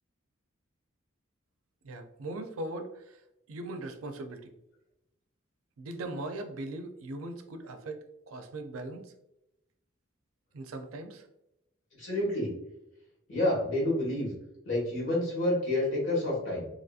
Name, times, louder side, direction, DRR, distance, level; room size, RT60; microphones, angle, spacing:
voice 1, 1.8-3.2 3.5-4.5 5.8-9.1 10.5-11.3, right 2 dB, 90° right, 6 dB, 0.4 m, -39 dB
voice 2, 12.0-12.5 13.3-14.3 14.6-16.7, left 1 dB, 65° left, -4 dB, 1.5 m, -29 dB
2.9 x 2.6 x 2.4 m, 0.87 s
head